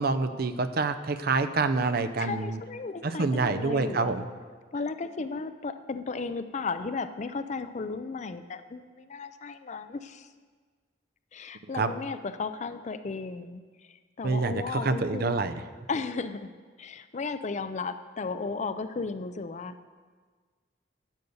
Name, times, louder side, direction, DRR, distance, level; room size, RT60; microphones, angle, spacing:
voice 1, 0.0-2.6 3.0-4.2 11.8-11.9 14.2-15.6, right 3 dB, 55° right, 10 dB, 0.6 m, -27 dB
voice 2, 2.2-4.2 4.7-10.3 11.3-15.3 15.9-16.5 16.8-19.8, left 4 dB, 40° left, 11 dB, 0.4 m, -35 dB
10.5 x 6.6 x 7.0 m, 1.5 s
head